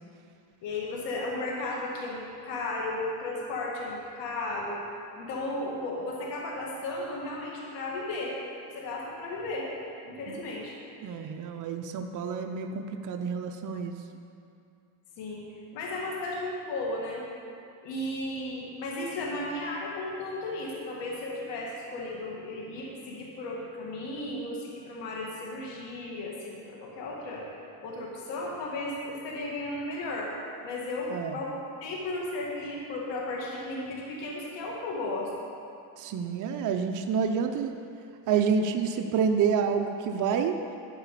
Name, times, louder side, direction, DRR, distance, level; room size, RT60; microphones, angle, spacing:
voice 1, 0.6-4.8 5.1-8.3 8.7-9.7 10.0-10.7 15.2-15.4 15.7-17.2 17.8-27.4 27.8-30.3 30.6-35.3, left 2 dB, 70° left, -3 dB, 2.1 m, -34 dB
voice 2, 11.0-14.0 31.1-31.4 36.0-37.7 38.3-40.6, right 6 dB, 45° right, 5 dB, 0.7 m, -28 dB
12.5 x 4.9 x 8.3 m, 2.6 s
cardioid pair, 120°, 44 cm